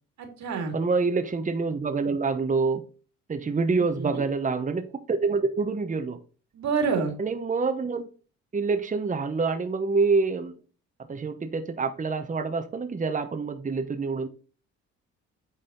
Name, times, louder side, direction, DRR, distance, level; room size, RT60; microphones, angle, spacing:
voice 1, 0.2-0.7 3.7-4.2 6.5-7.1, right 5 dB, 65° right, 4 dB, 2.4 m, -28 dB
voice 2, 0.7-2.8 3.3-6.2 7.2-8.1 8.5-10.5 11.1-14.3, right 4 dB, 25° right, 7 dB, 1.0 m, -26 dB
9.0 x 4.1 x 3.9 m, 0.37 s
cardioid pair, 90°, 30 cm